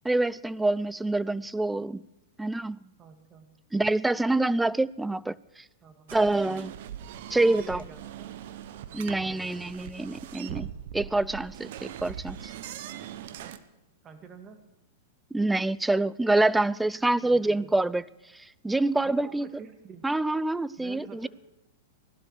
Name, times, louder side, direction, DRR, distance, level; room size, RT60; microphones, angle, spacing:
voice 1, 0.0-2.0 2.4-2.8 3.7-5.4 6.1-6.7 7.3-7.8 8.9-10.7 10.9-12.5 15.3-18.0 18.6-19.5 20.0-21.3, right 2 dB, 5° right, 20 dB, 0.5 m, -26 dB
voice 2, 3.0-3.5 5.8-6.2 7.5-8.3 8.9-9.7 11.0-11.2 14.0-14.6 17.2-17.8 18.8-20.1 20.8-21.3, right 6 dB, 30° right, 7 dB, 2.2 m, -48 dB
sound 1, 6.1-13.6, right 10 dB, 60° right, 1.1 m, -41 dB
18.0 x 12.0 x 6.6 m, 0.94 s
hypercardioid pair, 110°, 0 cm